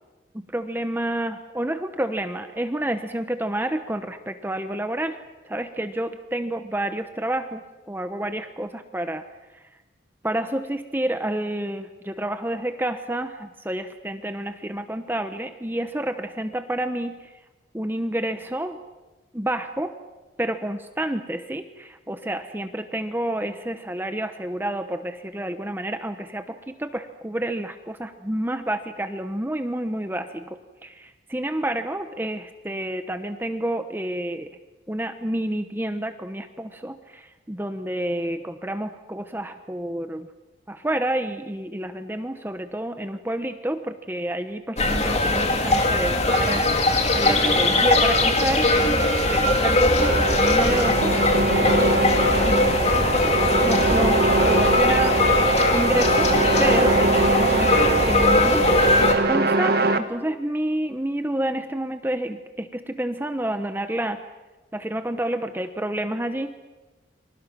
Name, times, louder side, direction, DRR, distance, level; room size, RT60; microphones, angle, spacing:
voice 1, 0.3-5.2 5.4-9.3 9.5-9.6 10.2-17.3 17.7-18.8 19.3-20.0 20.4-30.6 30.8-34.6 34.9-40.3 40.7-51.7 52.4-53.0 53.6-55.2 55.7-58.9 59.3-64.2 64.7-66.5, right 1 dB, 10° right, 8 dB, 0.9 m, -29 dB
sound 1, 44.8-59.2, left 2 dB, 35° left, 2.5 m, -20 dB
sound 2, 48.8-57.6, right 1 dB, 70° right, 5.8 m, -39 dB
sound 3, 50.0-60.0, right 2 dB, 55° right, 1.6 m, -23 dB
30.0 x 25.5 x 6.1 m, 1.2 s
head